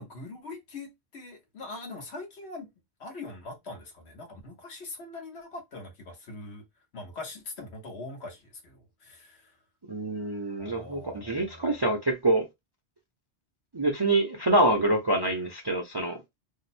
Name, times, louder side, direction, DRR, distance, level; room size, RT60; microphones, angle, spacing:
voice 1, 0.0-2.7 3.0-6.6 6.9-9.6 10.6-11.8, left 2 dB, 70° left, 1.3 m, -42 dB
voice 2, 9.9-12.5 13.7-16.2, right 2 dB, 30° right, 0.4 m, -26 dB
2.9 x 2.0 x 4.1 m
omnidirectional pair, 1.2 m